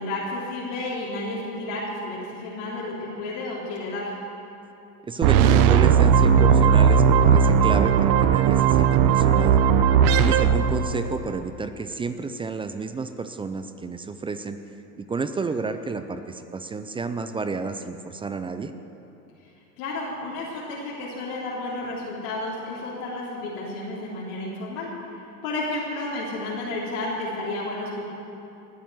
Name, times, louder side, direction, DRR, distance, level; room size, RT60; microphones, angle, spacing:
voice 1, 0.0-4.1 19.8-28.0, left 2 dB, 65° left, -5 dB, 3.5 m, -32 dB
voice 2, 5.0-9.6 10.2-14.6 15.0-18.7, right 4 dB, 10° right, 10 dB, 0.4 m, -30 dB
sound 1, 5.2-11.4, right 7 dB, 50° right, 0.8 m, -17 dB
19.5 x 7.6 x 8.0 m, 2.9 s
hypercardioid pair, 95°, 48 cm